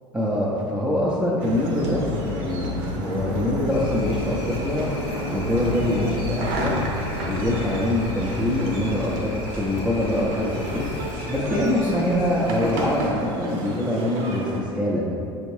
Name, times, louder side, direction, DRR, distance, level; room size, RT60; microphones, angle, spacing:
voice 1, 0.1-4.9 5.3-6.7 7.3-15.1, left 1 dB, 5° right, -7 dB, 0.6 m, -24 dB
sound 1, 1.4-14.6, right 1 dB, 55° right, 0.7 m, -31 dB
sound 2, 1.8-8.9, left 6 dB, 85° left, 0.4 m, -34 dB
sound 3, 3.7-13.1, left 2 dB, 40° left, 0.8 m, -36 dB
6.3 x 2.5 x 3.2 m, 2.6 s
figure-of-eight pair, 75°, 15 cm